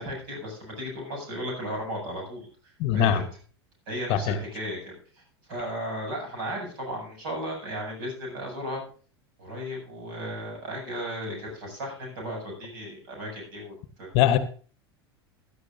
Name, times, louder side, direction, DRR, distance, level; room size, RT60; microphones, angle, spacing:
voice 1, 0.0-2.5 2.9-3.2 3.9-5.2 5.5-8.8 9.4-14.1, equal, 55° right, 0 dB, 7.6 m, -35 dB
voice 2, 2.8-3.2 4.1-4.4 14.1-14.4, left 10 dB, 45° left, 13 dB, 1.0 m, -21 dB
16.5 x 12.0 x 2.7 m, 0.39 s
figure-of-eight pair, 85°, 14 cm